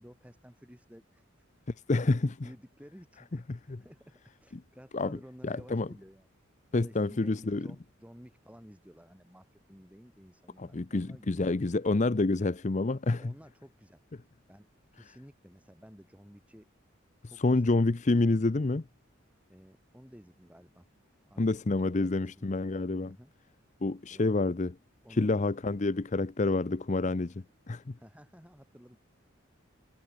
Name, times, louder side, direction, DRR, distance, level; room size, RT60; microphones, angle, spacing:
voice 1, 0.0-1.5 2.0-6.3 6.7-11.5 13.1-14.0 14.5-14.7 14.9-16.7 17.2-17.8 18.2-18.5 19.5-20.9 21.3-21.4 22.0-22.7 23.0-23.3 24.1-24.4 25.0-25.5 28.0-29.0, equal, 5° right, 5.6 m, -53 dB
voice 2, 1.9-2.3 3.5-3.8 4.5-4.6 4.9-5.2 5.4-5.9 6.7-7.7 10.6-13.3 17.4-18.8 21.4-23.2 23.8-24.7 25.1-27.9, left 2 dB, 35° left, 0.6 m, -28 dB
head